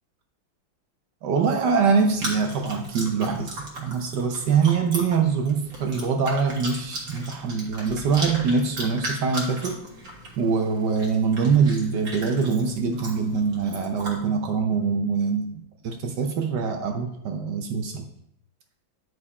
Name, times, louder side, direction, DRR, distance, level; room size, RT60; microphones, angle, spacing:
voice 1, 1.2-9.8 10.4-15.5 15.8-18.1, right 5 dB, 65° right, 4 dB, 1.2 m, -24 dB
Chewing mastication, 2.1-14.2, right 1 dB, 50° right, 1.8 m, -37 dB
8.7 x 4.9 x 4.1 m, 0.75 s
omnidirectional pair, 2.2 m